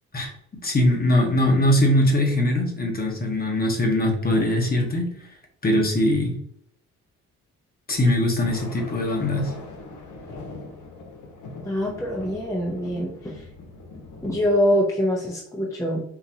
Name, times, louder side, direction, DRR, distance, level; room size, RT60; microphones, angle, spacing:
voice 1, 0.6-5.1 5.6-6.3 7.9-9.5, left 1 dB, 30° left, 2 dB, 1.1 m, -21 dB
Thunder, 8.3-14.5, left 3 dB, 80° left, 1.0 m, -41 dB
voice 2, 11.6-13.4 14.2-16.0, equal, 10° left, -2 dB, 0.7 m, -24 dB
3.9 x 2.6 x 2.9 m, 0.72 s
cardioid pair, 90°, 30 cm